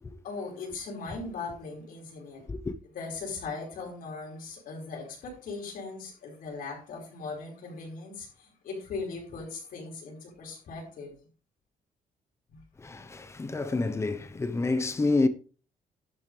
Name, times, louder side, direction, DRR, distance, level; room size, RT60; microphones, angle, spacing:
voice 1, 0.2-2.4 2.9-11.1 12.5-12.6, left 4 dB, 80° left, 5.2 m, -39 dB
voice 2, 12.8-15.3, left 3 dB, 20° left, 0.9 m, -28 dB
12.0 x 10.5 x 3.4 m
wide cardioid pair, 180°, 14 cm